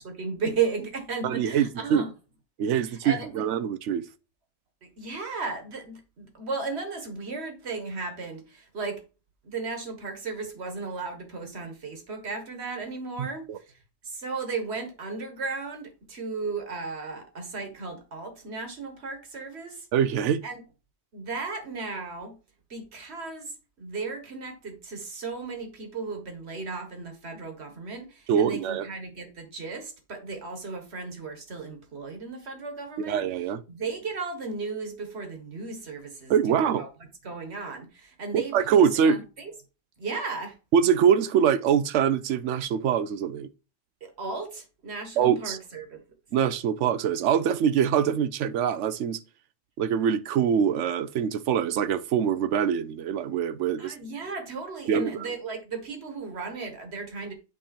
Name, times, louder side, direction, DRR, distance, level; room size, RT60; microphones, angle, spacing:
voice 1, 0.0-2.1 2.8-3.4 4.8-9.0 9.4-19.9 20.4-20.6 21.1-22.4 22.7-33.2 33.7-36.9 37.2-39.5 40.0-40.6 44.0-46.0 53.8-57.3, right 4 dB, 65° right, 1.7 m, -35 dB
voice 2, 1.2-2.0 2.6-4.0 13.2-13.6 19.9-20.4 28.3-28.8 33.0-33.6 36.3-36.8 38.5-39.2 40.7-43.5 45.2-45.6 46.3-49.2 49.8-53.9 54.9-55.1, right 8 dB, 90° right, 1.0 m, -24 dB
8.4 x 3.4 x 4.3 m
omnidirectional pair, 1.2 m